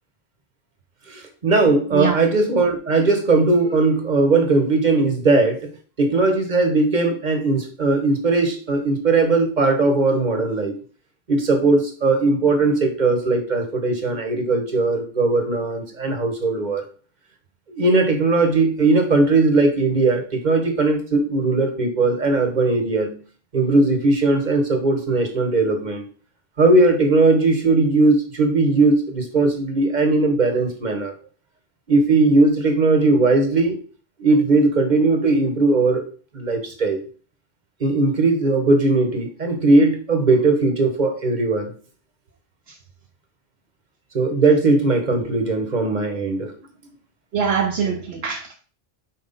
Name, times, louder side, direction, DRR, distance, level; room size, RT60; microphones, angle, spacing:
voice 1, 1.1-5.7 6.0-10.7 11.3-16.9 17.7-23.2 23.5-26.1 26.6-31.1 31.9-33.8 34.2-36.1 36.3-37.0 37.8-41.7 44.1-46.5, right 3 dB, 45° right, 1.1 m, -19 dB
voice 2, 47.3-48.5, right 7 dB, 75° right, 1.0 m, -23 dB
5.7 x 4.6 x 3.9 m
omnidirectional pair, 1.1 m